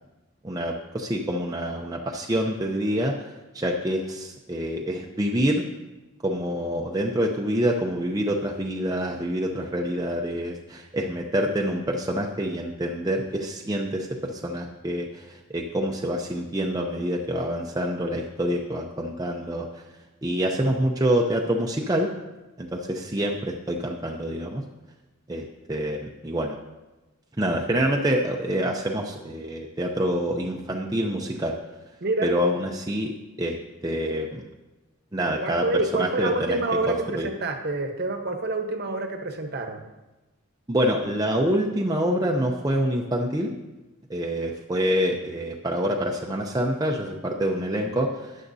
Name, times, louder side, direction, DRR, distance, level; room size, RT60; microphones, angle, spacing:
voice 1, 0.4-3.1 3.5-5.7 6.2-19.7 20.2-22.1 22.6-24.6 25.3-26.6 27.4-31.5 32.2-33.1 33.4-33.6 33.8-34.4 35.1-36.6 36.9-37.3 40.7-43.5 44.1-48.3, equal, 15° right, 0 dB, 0.6 m, -26 dB
voice 2, 35.4-39.8, right 2 dB, 50° right, 5 dB, 1.0 m, -27 dB
13.0 x 9.7 x 2.7 m, 1.1 s
head